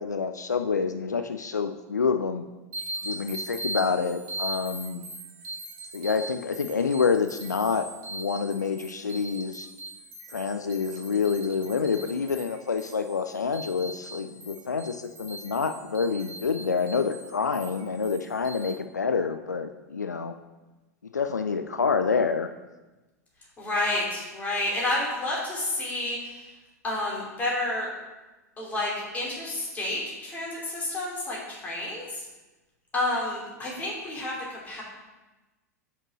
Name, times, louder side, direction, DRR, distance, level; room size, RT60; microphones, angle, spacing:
voice 1, 0.0-2.4 3.0-5.0 5.9-9.7 10.3-20.3 21.1-22.5, left 5 dB, 80° left, 8 dB, 0.4 m, -27 dB
sound 1, 2.7-18.7, right 2 dB, 35° right, 1.9 m, -40 dB
voice 2, 23.6-26.4 26.8-27.9 28.6-32.2 32.9-34.8, left 2 dB, 15° left, -4 dB, 2.8 m, -30 dB
5.9 x 5.5 x 6.2 m, 1.1 s
figure-of-eight pair, 95°, 9 cm